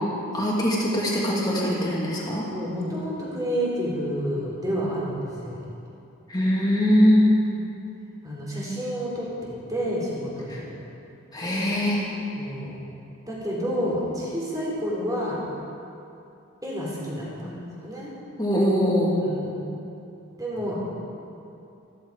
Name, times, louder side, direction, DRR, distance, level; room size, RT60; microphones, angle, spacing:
voice 1, 0.3-2.5 6.3-7.2 10.5-10.6 11.3-12.0 17.4-17.5 18.4-19.2, equal, 20° left, -5 dB, 2.6 m, -22 dB
voice 2, 2.5-5.6 7.5-7.6 8.2-10.7 12.4-12.8 13.3-15.4 16.6-17.5 17.8-18.1 19.2-19.6 20.4-20.8, equal, 15° right, -5 dB, 3.6 m, -29 dB
15.0 x 15.0 x 4.8 m, 2.7 s
head